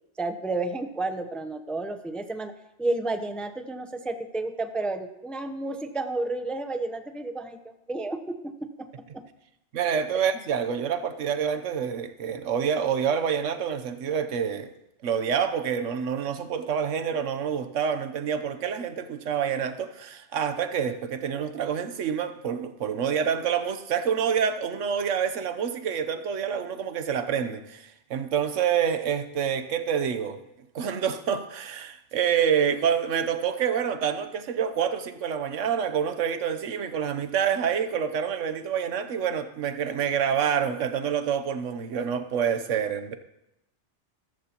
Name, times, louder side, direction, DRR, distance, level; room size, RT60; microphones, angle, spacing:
voice 1, 0.2-2.5 2.8-8.2, right 2 dB, ahead, 0.6 m, -31 dB
voice 2, 9.7-14.7 15.0-30.4 30.7-43.2, right 7 dB, 85° right, 1.2 m, -27 dB
15.0 x 14.0 x 2.9 m
omnidirectional pair, 1.2 m